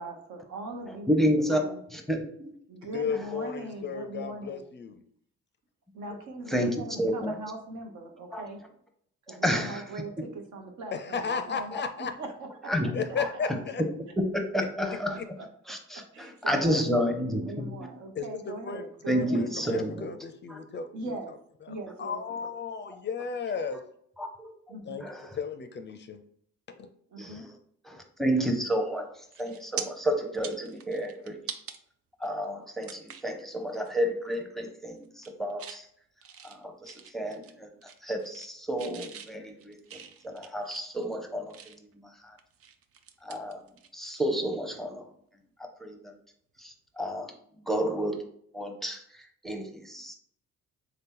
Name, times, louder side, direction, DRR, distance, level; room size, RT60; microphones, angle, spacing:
voice 1, 0.0-1.8 2.7-4.6 5.9-8.7 9.3-11.7 12.2-12.3 12.6-12.7 14.6-14.7 15.1-15.4 16.1-19.4 20.9-21.3 21.7-22.2 24.7-25.1 27.1-27.5, right 2 dB, 75° right, 3 dB, 0.9 m, -40 dB
voice 2, 0.9-2.5 6.5-7.4 8.3-8.4 9.3-9.8 12.7-12.9 13.2-13.3 13.8-13.9 14.2-14.3 14.5-15.2 15.7-17.7 19.1-20.1 20.5-20.6 24.2-24.5 25.0-25.3 27.2-27.6 27.8-31.4 32.2-35.9 36.4-41.7 42.0-42.4 43.2-43.6 43.9-45.1 45.8-46.2 46.6-48.2 48.5-50.1, equal, ahead, 4 dB, 0.6 m, -30 dB
voice 3, 2.8-5.0 10.9-12.1 12.9-13.8 15.2-15.3 18.1-21.3 21.6-23.8 24.8-25.1 25.3-26.2 26.7-26.9, left 5 dB, 40° left, 9 dB, 0.4 m, -34 dB
sound 1, 28.8-29.0 29.3-29.8 30.3-31.8 32.2-32.3 32.8-33.3 33.7-33.9 34.3-34.7 35.0-35.8 36.2-37.5 37.8-38.5 38.8-41.9 42.4-44.2 44.5-44.7 46.6-46.7, right 8 dB, 50° right, 0.5 m, -43 dB
3.6 x 2.9 x 3.7 m, 0.66 s
cardioid pair, 90°, 30 cm